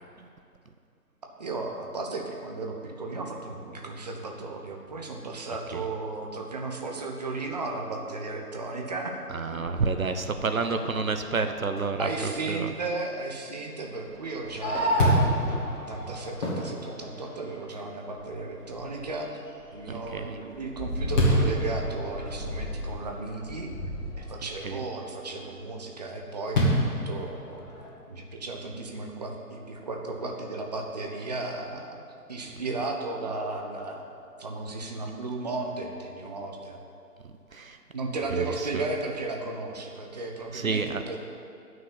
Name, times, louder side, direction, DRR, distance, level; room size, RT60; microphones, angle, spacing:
voice 1, 1.4-9.2 9.5-9.8 10.8-10.9 12.0-15.4 15.6-19.3 19.7-23.7 24.2-27.6 28.1-32.0 32.3-34.1 34.4-36.8 37.9-41.2, right 3 dB, 25° right, 1 dB, 0.8 m, -35 dB
voice 2, 9.3-12.7 20.1-20.3 24.6-24.8 37.5-37.8 38.6-38.8 40.5-41.0, right 4 dB, 60° right, 7 dB, 0.8 m, -29 dB
Fireworks, 14.1-17.6 18.2-18.3 18.8-19.2 19.6-24.5 26.5-27.9, equal, 30° left, 2.3 m, -28 dB
9.8 x 6.2 x 7.2 m, 2.5 s
figure-of-eight pair, 150°, 46 cm